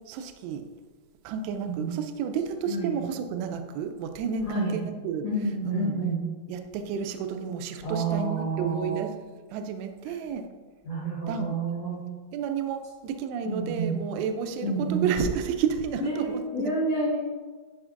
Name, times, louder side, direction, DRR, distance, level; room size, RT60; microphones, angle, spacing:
voice 1, 0.1-0.6 1.2-5.3 5.6-6.0 6.5-9.2 9.5-10.4 11.3-11.6 12.3-16.7, right 7 dB, 85° right, 6 dB, 2.4 m, -31 dB
voice 2, 2.7-3.0 4.4-4.8 5.2-6.3 7.8-9.0 10.8-12.0 13.4-14.0 14.6-15.1 16.0-17.2, right 2 dB, 80° left, -9 dB, 1.4 m, -29 dB
9.6 x 5.1 x 2.5 m, 1.4 s
omnidirectional pair, 5.5 m